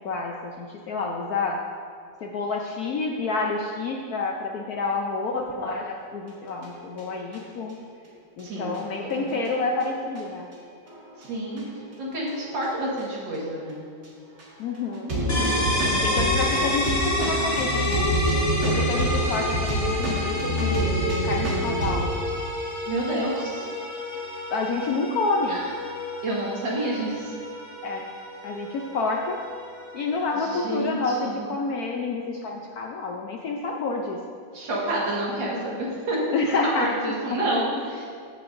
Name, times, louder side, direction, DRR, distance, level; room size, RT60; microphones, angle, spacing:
voice 1, 0.0-1.6 2.2-7.7 8.4-10.5 14.6-15.7 16.0-18.1 18.6-22.1 24.5-25.6 27.8-28.0 28.4-29.4 29.9-34.2 36.3-36.9, left 3 dB, 70° left, 0 dB, 0.9 m, -28 dB
sound 1, 6.6-7.4 7.7-7.8 8.4-8.5 8.7-8.8 9.3-10.2 10.9-11.2 11.5-11.6 12.3-12.7 13.0-13.1 13.3-13.4 14.0-14.1 14.4-14.5 14.9-22.0, equal, 45° right, 2.0 m, -27 dB
voice 2, 8.4-9.3 11.2-11.6 12.0-13.8 15.7-16.3 16.5-16.7 18.9-19.3 22.9-23.6 25.5-25.7 26.2-27.3 30.3-31.4 34.5-38.1, right 1 dB, 65° right, -4 dB, 2.3 m, -29 dB
sound 2, 15.3-30.9, left 1 dB, 15° left, 0.5 m, -30 dB
14.0 x 6.8 x 2.6 m, 2.2 s
omnidirectional pair, 2.2 m